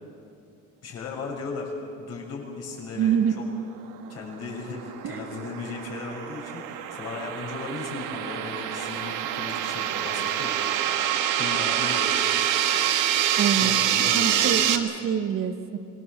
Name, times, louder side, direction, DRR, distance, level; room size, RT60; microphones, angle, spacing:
voice 1, 0.8-1.7 2.0-3.4 4.1-10.6 11.3-12.2 13.6-14.6, left 4 dB, 50° left, -2 dB, 6.8 m, -36 dB
voice 2, 2.9-3.4 5.0-5.3 13.4-13.8 14.1-15.8, right 8 dB, 45° right, 7 dB, 1.4 m, -25 dB
sound 1, 4.3-14.8, right 10 dB, 75° right, 1.8 m, -26 dB
26.0 x 21.5 x 7.5 m, 2.5 s
cardioid pair, 135°, 31 cm